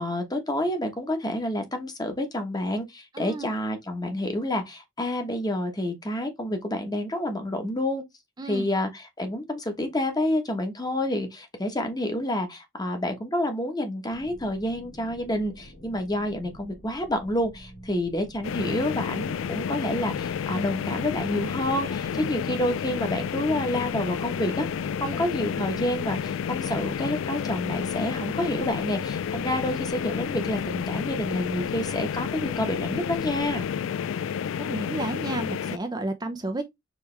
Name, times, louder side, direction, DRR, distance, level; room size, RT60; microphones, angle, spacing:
voice 1, 0.0-8.0 8.4-24.7 25.0-33.7, left 1 dB, 20° left, 1.2 m, -29 dB
voice 2, 3.1-3.5 8.4-8.7 21.9-22.0 25.0-25.3 34.6-36.6, right 2 dB, 20° right, 0.6 m, -32 dB
sound 1, 14.1-33.7, equal, 60° left, 2.8 m, -48 dB
sound 2, 18.4-35.8, left 7 dB, 80° left, 0.3 m, -30 dB
4.7 x 3.3 x 3.2 m
head